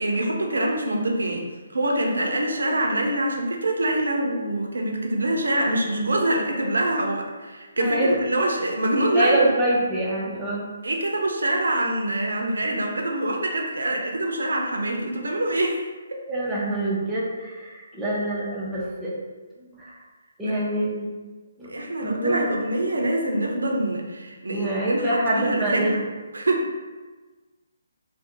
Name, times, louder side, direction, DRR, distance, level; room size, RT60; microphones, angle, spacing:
voice 1, 0.0-1.5 1.7-9.5 10.8-15.9 20.4-20.6 21.7-26.0 26.3-26.7, right 1 dB, 85° right, 1 dB, 0.6 m, -25 dB
voice 2, 7.8-8.1 9.1-10.7 16.3-19.1 19.8-20.0 20.4-21.1 21.6-21.7 22.0-22.5 24.5-26.0, right 1 dB, 10° right, -8 dB, 0.8 m, -25 dB
2.7 x 2.2 x 3.7 m, 1.3 s
hypercardioid pair, 150°, 0 cm